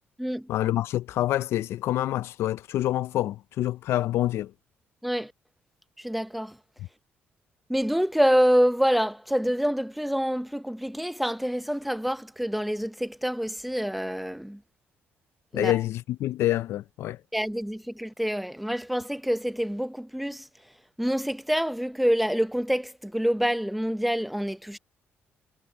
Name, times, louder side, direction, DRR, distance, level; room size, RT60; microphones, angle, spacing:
voice 1, 0.5-4.5 15.5-17.2, left 14 dB, 65° left, 0.3 m, -27 dB
voice 2, 6.0-6.6 7.7-14.6 15.5-15.7 17.3-20.5 21.0-24.8, equal, ahead, 0.6 m, -26 dB
cardioid pair, 160°, 5 cm